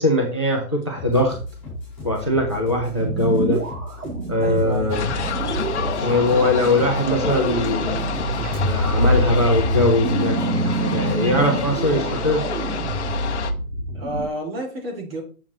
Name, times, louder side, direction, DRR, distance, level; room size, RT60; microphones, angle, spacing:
voice 1, 0.0-1.4 2.0-3.6 4.3-5.1 6.0-8.0 8.6-12.4, left 1 dB, 20° left, 2 dB, 0.5 m, -21 dB
sound 1, 0.9-11.9, left 1 dB, 5° left, 4.7 m, -35 dB
sound 2, 3.0-14.3, right 1 dB, 70° right, 2.6 m, -26 dB
voice 2, 4.4-5.0 11.9-12.6 13.9-15.2, right 2 dB, 40° right, 1 dB, 2.4 m, -31 dB
sound 3, 4.9-13.5, left 4 dB, 50° left, 0.8 m, -28 dB
8.0 x 7.1 x 2.9 m, 0.39 s
hypercardioid pair, 175°, 45 cm